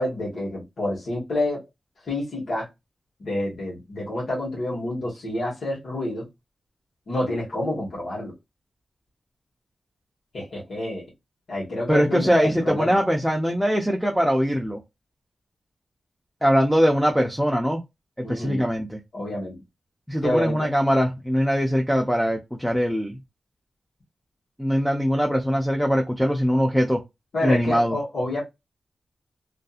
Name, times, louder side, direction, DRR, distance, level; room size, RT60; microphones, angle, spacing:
voice 1, 0.0-1.6 2.1-2.7 3.2-6.3 7.1-8.3 10.3-11.1 11.5-13.0 18.2-18.6 19.1-19.6 20.2-20.7 27.3-28.4, left 1 dB, 70° left, 1.2 m, -28 dB
voice 2, 11.9-14.8 16.4-17.8 18.3-19.0 20.1-23.2 24.6-27.0 27.4-28.0, equal, ahead, 0.4 m, -22 dB
2.6 x 2.4 x 2.3 m
wide cardioid pair, 145°, 0 cm